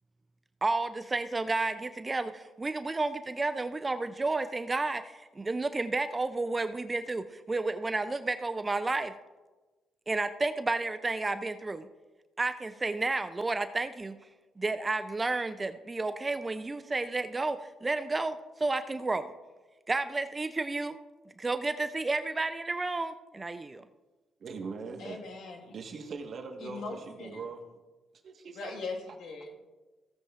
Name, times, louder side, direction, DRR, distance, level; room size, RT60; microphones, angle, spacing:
voice 1, 0.6-9.1 10.1-11.9 12.4-14.2 14.6-19.3 19.9-21.0 21.4-23.9, right 3 dB, 20° right, 0.4 m, -31 dB
voice 2, 24.4-25.2 25.7-27.6 28.2-28.8, right 4 dB, 55° right, 1.3 m, -41 dB
voice 3, 25.0-25.8 26.6-27.4 28.5-29.7, left 3 dB, 75° left, 1.6 m, -40 dB
15.5 x 8.5 x 2.5 m
cardioid pair, 90°, 0 cm